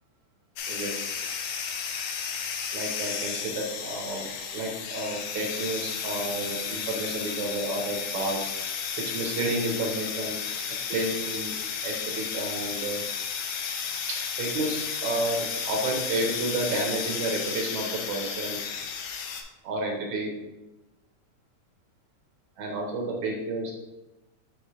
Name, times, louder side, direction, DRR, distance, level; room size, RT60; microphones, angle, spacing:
sound 1, 0.6-19.4, left 6 dB, 90° left, 2.3 m, -33 dB
voice 1, 0.7-1.1 2.7-4.3 4.5-8.4 9.0-10.4 10.9-11.6 11.8-13.0 14.4-18.6 19.6-20.3 22.6-23.7, right 2 dB, 70° right, 0 dB, 2.2 m, -31 dB
6.9 x 3.5 x 4.8 m, 1.0 s
omnidirectional pair, 3.6 m